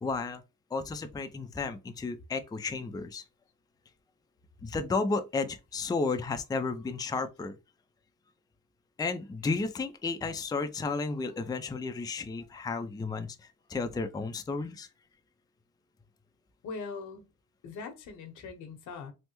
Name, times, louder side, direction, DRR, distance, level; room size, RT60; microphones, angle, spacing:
voice 1, 0.0-0.4 0.7-3.2 4.6-7.5 9.0-14.9, left 4 dB, 15° left, 0.4 m, -33 dB
voice 2, 16.6-17.3 17.6-19.1, left 4 dB, 80° left, 0.9 m, -41 dB
3.3 x 2.0 x 3.0 m
cardioid pair, 90°, 30 cm